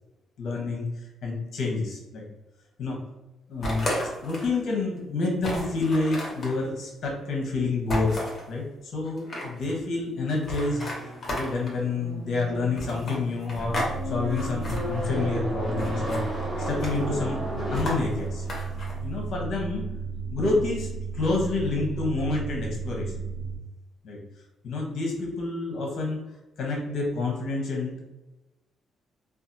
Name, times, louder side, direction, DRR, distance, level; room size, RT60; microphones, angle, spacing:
voice 1, 0.4-0.9 1.2-2.2 2.8-3.0 3.5-3.9 4.2-8.2 8.5-10.8 11.4-16.2 16.6-17.4 17.7-18.4 19.0-19.8 20.3-23.1 24.0-24.2 24.6-26.2 26.6-28.0, left 3 dB, 65° left, 0 dB, 0.9 m, -28 dB
sound 1, 3.6-4.6 5.0-5.1 5.4-6.5 7.9-8.4 9.0-9.7 10.4-11.8 12.7-13.9 14.2-14.8 15.8-16.2 16.6-17.1 17.7-18.9, left 1 dB, 40° left, 1.1 m, -33 dB
sound 2, 10.6-18.7, left 1 dB, 5° right, 1.3 m, -35 dB
sound 3, 13.5-23.6, right 5 dB, 80° right, 0.9 m, -34 dB
2.6 x 2.3 x 2.6 m, 1.0 s
cardioid pair, 90°, 0 cm